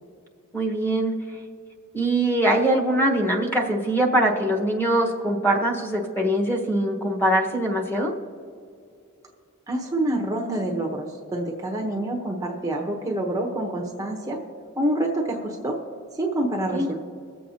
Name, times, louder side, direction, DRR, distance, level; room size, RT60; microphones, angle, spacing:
voice 1, 0.5-1.1 1.9-8.1 16.7-16.9, right 1 dB, 10° left, 0 dB, 1.2 m, -22 dB
voice 2, 9.7-14.4 14.8-15.8 16.1-17.0, right 1 dB, 15° right, 0 dB, 0.9 m, -27 dB
23.0 x 7.7 x 2.8 m, 2.3 s
head